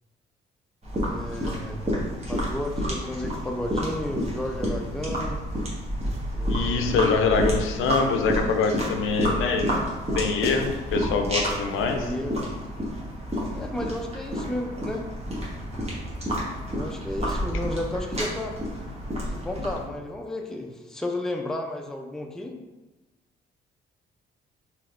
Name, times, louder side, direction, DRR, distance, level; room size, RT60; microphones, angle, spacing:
sound 1, 0.8-19.8, equal, 30° right, 1.1 m, -30 dB
voice 1, 1.1-1.8 2.3-5.4 6.3-7.2 11.9-12.4 13.6-15.0 16.7-18.6 19.3-22.6, left 1 dB, ahead, 2 dB, 0.4 m, -33 dB
voice 2, 6.5-9.8 10.1-12.1, left 4 dB, 75° left, 4 dB, 0.4 m, -24 dB
3.1 x 2.9 x 2.5 m, 1.1 s
supercardioid pair, 65°, 21 cm